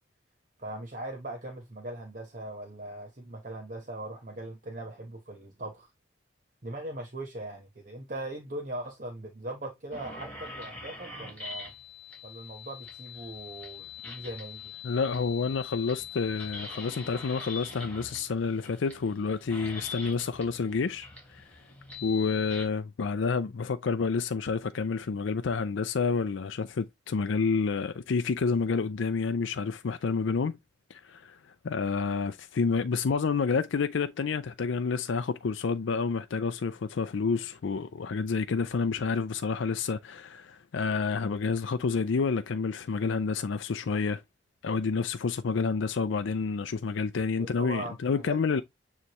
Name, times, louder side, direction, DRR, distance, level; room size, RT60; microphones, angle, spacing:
voice 1, 0.6-5.9 6.6-11.7 12.2-14.7 47.3-48.6, right 1 dB, 40° right, 1.1 m, -40 dB
sound 1, 9.9-22.7, left 5 dB, 10° left, 3.0 m, -43 dB
voice 2, 14.8-21.4 22.0-30.6 30.9-31.4 31.6-44.2 44.6-48.6, left 5 dB, 75° left, 0.4 m, -29 dB
9.5 x 3.3 x 3.0 m
head